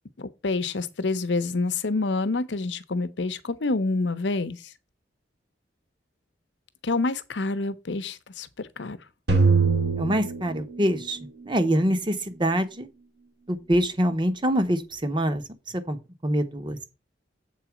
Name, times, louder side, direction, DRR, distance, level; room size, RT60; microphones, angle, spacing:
voice 1, 0.2-4.6 6.8-9.0, left 3 dB, 75° left, 0.8 m, -27 dB
sound 1, 9.3-11.5, right 4 dB, 65° right, 2.5 m, -23 dB
voice 2, 10.0-11.2 11.4-12.9 13.5-15.4 15.9-16.0 16.2-16.8, equal, 25° right, 1.0 m, -24 dB
7.6 x 4.1 x 5.9 m
head